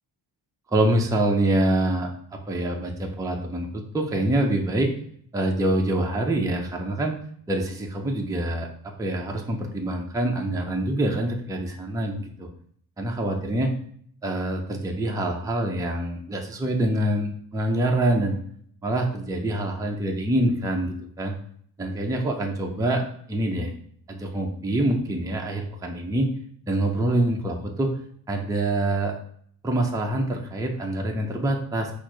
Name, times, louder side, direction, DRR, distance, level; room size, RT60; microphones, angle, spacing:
voice 1, 0.7-2.1 2.5-4.9 5.3-7.2 7.5-12.5 13.0-13.7 14.2-18.4 18.8-21.3 21.8-23.0 23.3-23.7 24.1-26.3 26.7-27.9 28.3-29.1 29.6-31.9, right 1 dB, 10° right, 1 dB, 0.5 m, -25 dB
4.4 x 2.5 x 4.6 m, 0.62 s
wide cardioid pair, 160°, 41 cm